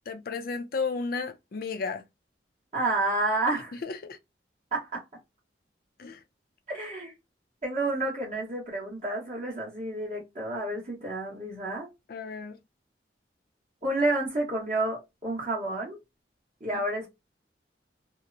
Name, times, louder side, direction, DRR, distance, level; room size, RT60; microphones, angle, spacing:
voice 1, 0.1-2.0 3.7-4.2 6.0-6.2 12.1-12.6, left 4 dB, 55° left, 0.4 m, -33 dB
voice 2, 2.7-3.7 4.7-5.0 6.7-7.1 7.6-11.9 13.8-16.0 16.6-17.1, right 2 dB, 40° right, 1.0 m, -30 dB
2.8 x 2.0 x 2.5 m
head